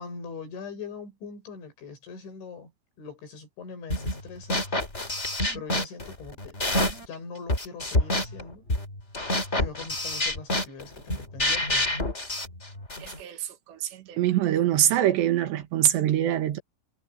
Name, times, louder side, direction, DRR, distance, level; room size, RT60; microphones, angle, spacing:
voice 1, 0.0-2.7 3.0-4.6 5.5-6.6 7.0-8.6 9.6-11.9, left 5 dB, 90° left, 8.9 m, -41 dB
sound 1, 3.9-4.2 4.5-7.1 7.5-13.2, left 1 dB, 15° left, 3.9 m, -27 dB
voice 2, 13.0-16.6, right 12 dB, 75° right, 3.8 m, -24 dB
omnidirectional pair, 5.2 m